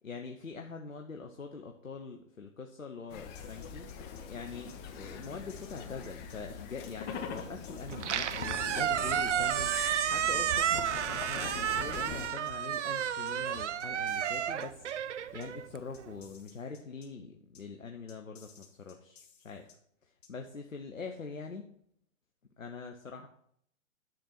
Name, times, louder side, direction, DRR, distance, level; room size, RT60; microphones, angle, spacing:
voice 1, 0.0-3.9 4.2-19.7 20.0-21.7 22.6-23.3, left 4 dB, 90° left, 4 dB, 1.0 m, -44 dB
sound 1, 3.1-12.3, left 6 dB, 25° left, 1.1 m, -43 dB
sound 2, 3.3-4.2 4.7-4.8 5.2-6.4 6.8-6.9 7.4-8.5 9.0-9.1 9.5-10.6 11.1-11.2 11.7-12.8 13.3-13.4 13.8-14.9 15.4-15.5 15.9-17.1 17.5-17.6 18.1-19.7 20.2-20.3, left 6 dB, 55° left, 2.6 m, -58 dB
Squeak, 7.9-16.1, right 9 dB, 65° right, 0.6 m, -32 dB
10.5 x 4.3 x 5.9 m, 0.67 s
figure-of-eight pair, 120°, 39 cm